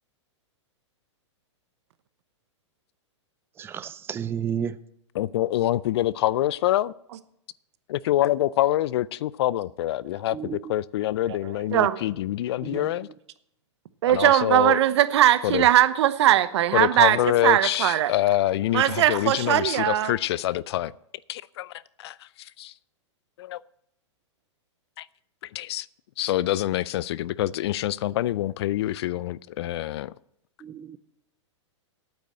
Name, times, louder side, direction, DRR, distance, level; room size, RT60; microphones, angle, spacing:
voice 1, 3.6-4.8 10.3-10.7 12.6-12.9 30.6-31.0, right 8 dB, 15° right, 0.4 m, -32 dB
voice 2, 5.2-6.9 7.9-13.1 14.1-14.8 15.4-15.6 16.7-20.9 21.3-21.7 22.0-22.7 23.4-23.6 25.0-25.1 25.5-25.9 26.2-30.1, left 14 dB, 60° left, 0.4 m, -26 dB
voice 3, 11.4-12.0 14.0-18.1 18.7-20.1, right 12 dB, 65° right, 0.9 m, -20 dB
9.1 x 8.3 x 7.6 m
hypercardioid pair, 120°, 16 cm